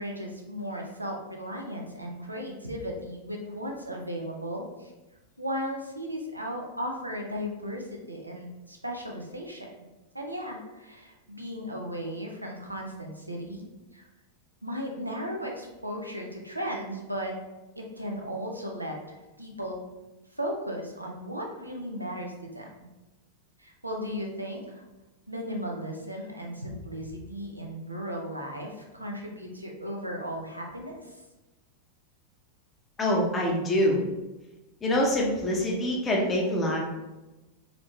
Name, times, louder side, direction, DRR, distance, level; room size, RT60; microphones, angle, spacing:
voice 1, 0.0-4.9 5.4-9.7 10.1-13.7 13.9-14.1 14.6-17.4 17.8-19.8 20.3-22.9 23.6-24.8 25.3-31.2, equal, 85° right, 1 dB, 0.7 m, -36 dB
voice 2, 33.0-34.0 34.8-36.8, left 1 dB, 20° left, -1 dB, 0.9 m, -25 dB
3.9 x 3.0 x 3.2 m, 1.1 s
figure-of-eight pair, 90°, 0 cm